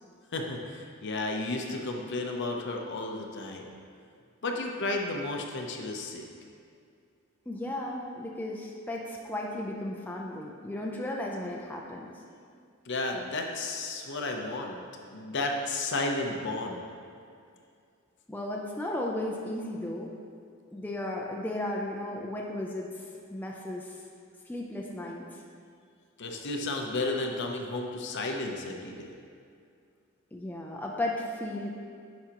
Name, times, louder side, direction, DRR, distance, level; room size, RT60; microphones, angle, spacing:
voice 1, 0.3-3.7 4.4-6.3 12.9-14.8 15.1-16.9 26.2-29.1, left 2 dB, 55° left, 2 dB, 0.7 m, -33 dB
voice 2, 7.5-12.1 18.3-20.1 20.7-23.0 23.3-24.0 24.5-25.4 30.3-31.7, left 1 dB, 10° left, -2 dB, 0.5 m, -35 dB
10.5 x 5.0 x 2.9 m, 2.3 s
head